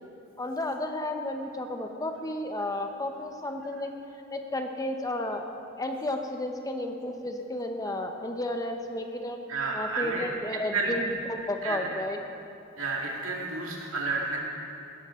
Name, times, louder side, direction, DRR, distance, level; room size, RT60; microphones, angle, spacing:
voice 1, 0.4-3.9 4.3-9.4 9.7-12.2, left 1 dB, 15° left, 4 dB, 0.9 m, -32 dB
voice 2, 9.5-10.3 10.7-10.9 11.6-11.9 12.8-14.4, right 3 dB, 80° right, -2 dB, 2.3 m, -30 dB
16.5 x 13.5 x 3.8 m, 2.7 s
head